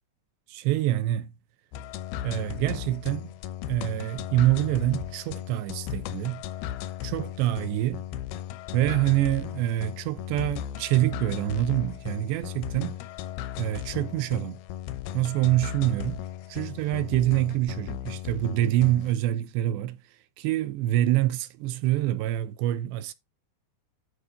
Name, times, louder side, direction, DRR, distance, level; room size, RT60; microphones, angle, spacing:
voice 1, 0.5-1.3 2.2-3.3 3.7-6.4 7.0-8.0 8.7-13.0 13.6-14.6 15.1-16.2 16.5-20.0 20.4-23.1, right 14 dB, 80° right, 2.8 m, -26 dB
sound 1, 1.7-19.1, left 11 dB, 80° left, 2.3 m, -36 dB
11.5 x 6.2 x 4.1 m
omnidirectional pair, 5.3 m